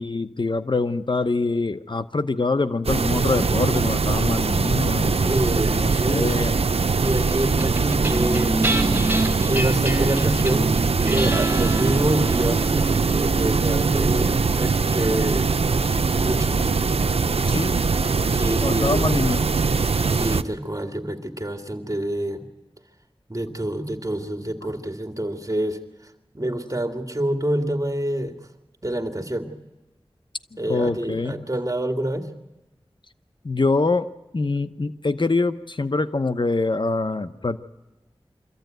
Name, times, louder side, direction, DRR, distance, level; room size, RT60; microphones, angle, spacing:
voice 1, 0.0-5.4 5.7-6.5 17.5-17.8 18.6-19.4 30.7-31.4 33.4-37.6, left 3 dB, 50° left, 11 dB, 0.9 m, -24 dB
sound 1, 2.8-20.4, right 4 dB, 85° right, 0.7 m, -22 dB
voice 2, 5.2-6.3 7.0-8.6 9.4-10.8 11.0-15.5 16.2-16.7 18.3-19.1 20.2-22.4 23.3-25.8 26.3-28.4 28.8-29.5 30.6-32.3, right 1 dB, 35° right, 5 dB, 2.3 m, -27 dB
sound 2, 7.6-18.2, right 2 dB, 20° right, 3.5 m, -28 dB
24.5 x 14.5 x 9.2 m, 1.1 s
wide cardioid pair, 45°, 10 cm